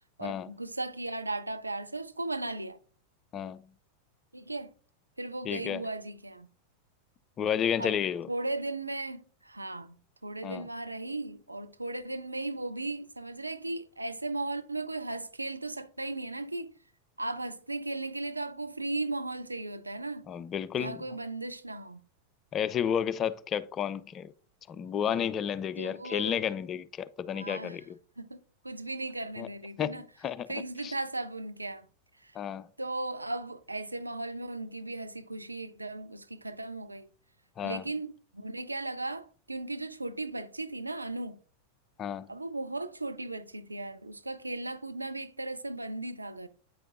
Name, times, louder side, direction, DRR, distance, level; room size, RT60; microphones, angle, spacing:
voice 1, 0.2-2.8 4.3-4.7 5.2-6.5 7.8-8.0 8.3-16.7 17.2-20.2 20.8-22.0 25.8-26.4 27.3-27.8 28.2-30.1 30.5-31.9 32.2-32.4 32.8-37.1 37.6-41.4 42.3-46.5, right 2 dB, 85° right, 0.4 m, -36 dB
voice 2, 5.5-5.8 7.4-8.3 10.4-10.7 20.3-21.0 22.5-24.3 24.7-28.0 29.4-29.5 29.8-30.5 30.8-30.9 32.4-32.7 37.6-37.8 42.0-42.3, left 8 dB, 30° left, 0.4 m, -31 dB
8.3 x 5.0 x 2.5 m
figure-of-eight pair, 90°, 0 cm